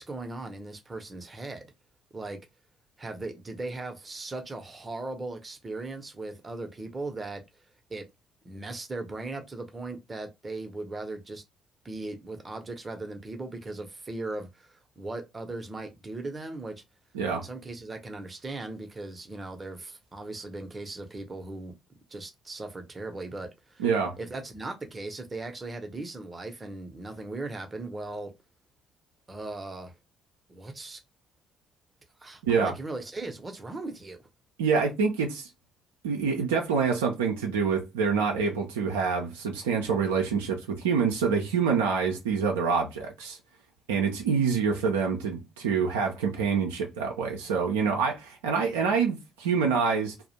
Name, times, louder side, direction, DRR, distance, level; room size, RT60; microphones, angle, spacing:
voice 1, 0.0-1.7 2.1-2.4 3.0-7.4 7.9-8.0 8.4-11.4 11.8-16.7 17.3-21.7 22.1-23.9 24.2-28.3 29.3-29.9 30.5-31.0 32.2-34.2, right 2 dB, 25° right, 0.6 m, -38 dB
voice 2, 23.8-24.2 32.4-32.7 34.6-35.5 36.0-43.4 43.9-50.3, right 5 dB, 80° right, 0.4 m, -26 dB
2.4 x 2.0 x 2.7 m
figure-of-eight pair, 50°, 0 cm